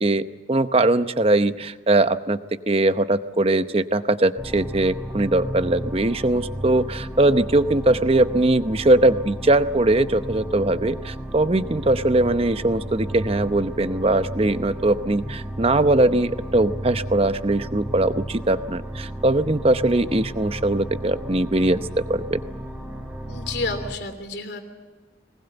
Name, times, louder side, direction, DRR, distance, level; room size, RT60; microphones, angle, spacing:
voice 1, 0.0-21.8 22.1-22.4, right 2 dB, 30° right, 11 dB, 0.8 m, -21 dB
sound 1, 4.4-23.9, right 1 dB, 10° right, 3.2 m, -34 dB
voice 2, 23.3-24.6, left 3 dB, 65° left, 6 dB, 3.0 m, -30 dB
22.0 x 20.0 x 8.1 m, 1.3 s
head